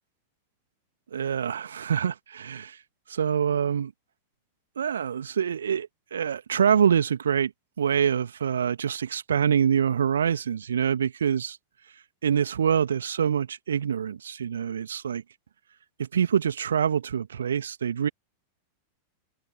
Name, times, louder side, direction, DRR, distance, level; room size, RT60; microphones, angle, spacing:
voice 1, 1.1-2.8 3.1-3.9 4.8-7.5 7.8-11.6 12.2-15.2 16.0-18.1, right 8 dB, 70° right, 1.8 m, -25 dB
figure-of-eight pair, 90°, 0 cm